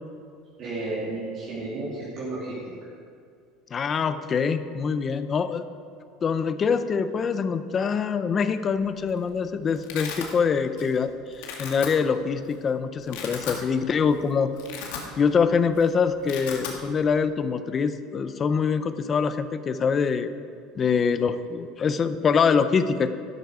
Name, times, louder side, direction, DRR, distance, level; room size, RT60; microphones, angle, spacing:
voice 1, 0.6-2.7, right 2 dB, 40° right, -8 dB, 2.8 m, -32 dB
voice 2, 3.7-5.6 6.2-14.5 15.2-20.3 20.8-23.1, left 6 dB, 25° left, 11 dB, 0.5 m, -24 dB
Domestic sounds home sounds, 8.8-9.2 9.4-10.3 10.8-11.0 11.3-11.9 12.5-12.6 13.0-13.6 14.0-14.2 14.5-15.4 15.7-15.8 16.1-16.8, left 7 dB, 85° left, 2.0 m, -36 dB
12.5 x 12.0 x 4.9 m, 2.4 s
cardioid pair, 165°, 0 cm